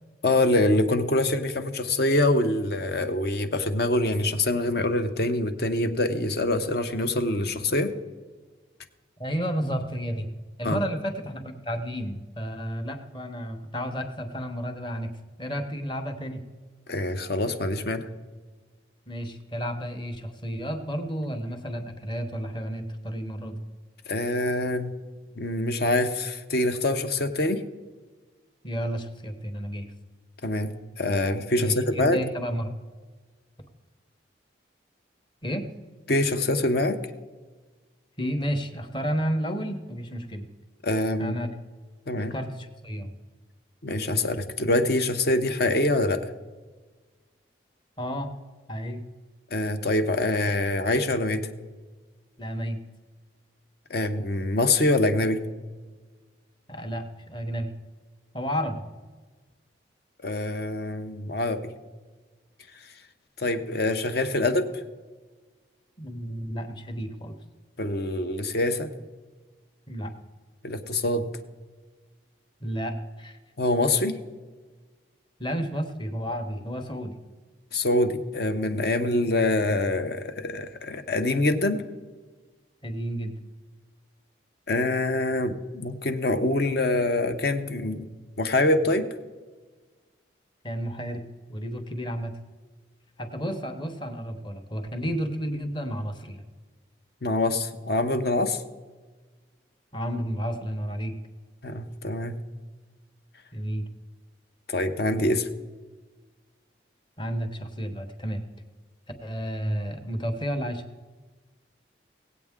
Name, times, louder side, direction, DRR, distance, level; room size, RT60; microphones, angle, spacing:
voice 1, 0.2-7.9 10.6-10.8 16.9-18.0 24.1-24.9 25.4-27.6 30.4-30.7 31.0-32.2 36.1-37.0 40.8-41.3 42.1-42.3 43.8-46.3 49.5-51.5 53.9-55.4 60.2-61.7 63.4-64.7 67.8-68.9 70.6-71.3 73.6-74.2 77.7-81.8 84.7-88.1 88.4-89.1 97.2-98.6 101.6-102.3 104.7-105.5, left 2 dB, 55° left, 8 dB, 0.8 m, -25 dB
voice 2, 9.2-10.3 10.6-15.1 15.4-16.4 19.1-23.6 28.6-29.9 31.6-32.7 35.4-35.7 38.2-40.5 41.2-41.5 42.2-43.1 48.0-48.3 48.7-49.0 52.4-52.8 56.7-57.7 58.3-58.8 66.0-67.3 69.9-70.1 72.6-73.4 75.4-77.2 82.8-83.4 90.6-91.2 91.5-92.4 93.2-96.4 99.9-101.1 103.5-103.9 107.2-108.4 109.2-110.8, equal, 25° left, 6 dB, 1.0 m, -31 dB
18.5 x 8.3 x 3.6 m, 1.3 s
head